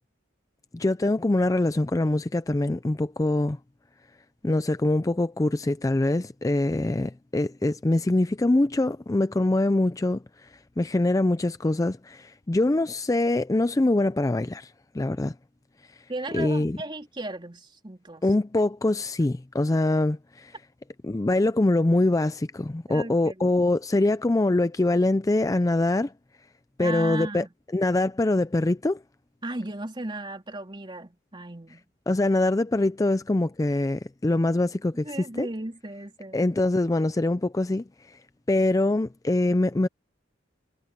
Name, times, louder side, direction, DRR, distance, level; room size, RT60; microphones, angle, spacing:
voice 1, 0.7-3.6 4.4-10.5 10.8-15.3 16.3-16.8 18.2-20.5 21.0-26.1 26.8-27.4 27.7-29.0 32.1-35.5 36.3-38.2 38.5-39.9, left 2 dB, 20° left, 0.4 m, -24 dB
voice 2, 16.1-18.2 22.9-23.6 26.8-27.5 29.4-31.8 35.0-36.5, right 2 dB, 25° right, 3.3 m, -36 dB
head